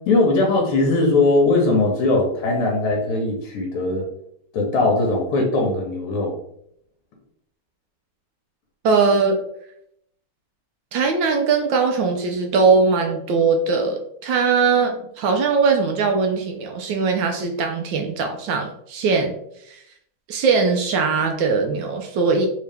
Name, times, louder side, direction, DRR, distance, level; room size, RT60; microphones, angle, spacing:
voice 1, 0.1-4.0 4.5-6.4, left 2 dB, 80° left, 1 dB, 1.6 m, -20 dB
voice 2, 8.8-9.4 10.9-19.3 19.7-19.8 20.3-22.5, right 4 dB, 75° right, 4 dB, 1.1 m, -20 dB
3.8 x 2.8 x 3.3 m, 0.74 s
omnidirectional pair, 2.4 m